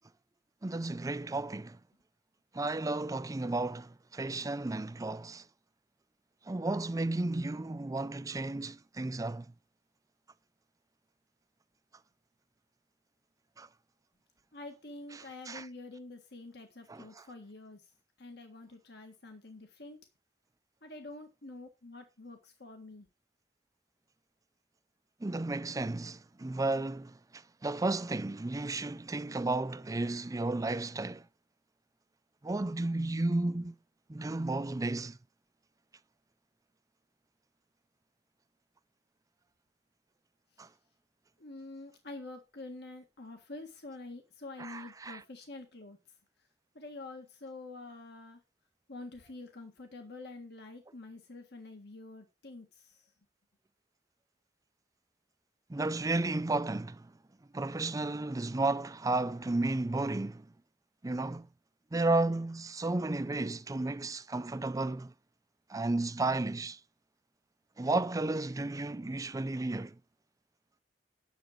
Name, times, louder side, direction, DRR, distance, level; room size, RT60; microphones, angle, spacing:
voice 1, 0.6-1.8 2.5-5.4 6.5-9.5 13.6-13.7 15.5-15.7 16.9-17.1 25.2-31.2 32.4-33.7 34.1-35.2 40.6-40.7 44.6-45.2 55.7-57.1 57.5-60.5 61.0-61.5 61.9-65.1 65.7-66.8 67.8-70.0, right 2 dB, 20° right, 0.5 m, -33 dB
voice 2, 14.5-17.8 18.2-20.0 20.8-23.1 41.4-46.0 46.7-48.4 48.9-53.1, left 2 dB, 65° left, 1.7 m, -47 dB
10.0 x 7.0 x 5.0 m
head